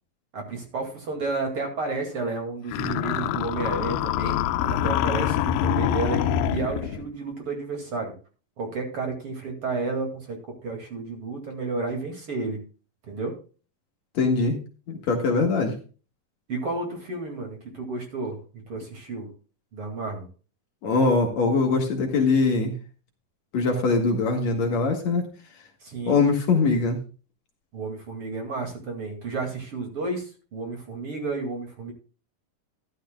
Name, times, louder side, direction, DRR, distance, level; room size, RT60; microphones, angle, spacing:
voice 1, 0.3-8.1 8.6-12.6 13.1-13.3 16.5-18.4 18.7-19.3 19.7-20.3 25.8-26.2 27.7-31.9, right 3 dB, 45° right, 3 dB, 2.8 m, -31 dB
sound 1, 2.7-7.0, left 10 dB, 85° left, 2.4 m, -25 dB
voice 2, 14.2-14.6 14.9-15.8 20.8-22.7 23.5-25.2 26.1-27.0, left 3 dB, 55° left, 3 dB, 2.5 m, -22 dB
14.5 x 11.0 x 2.2 m, 0.35 s
omnidirectional pair, 4.0 m